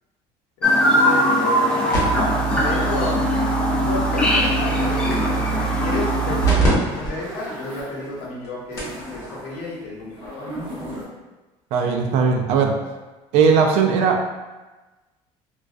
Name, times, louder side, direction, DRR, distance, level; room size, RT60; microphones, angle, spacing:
voice 1, 0.6-3.4 3.8-5.1 5.7-11.0, left 2 dB, 75° left, -3 dB, 0.7 m, -31 dB
Chirp tweet, 0.6-6.5, left 1 dB, 5° left, 0.4 m, -21 dB
sound 1, 1.9-6.7 7.0-7.1 7.8-7.9 8.4-8.5 8.8-9.0 10.3-10.4, right 6 dB, 25° left, 1.0 m, -25 dB
sound 2, 4.5-6.2 6.7-8.3 8.7-11.0, right 1 dB, 40° right, 0.9 m, -35 dB
voice 2, 11.7-12.7 13.3-14.2, right 5 dB, 65° right, 3 dB, 0.4 m, -18 dB
2.4 x 2.2 x 2.3 m, 1.2 s
cardioid pair, 140°, 12 cm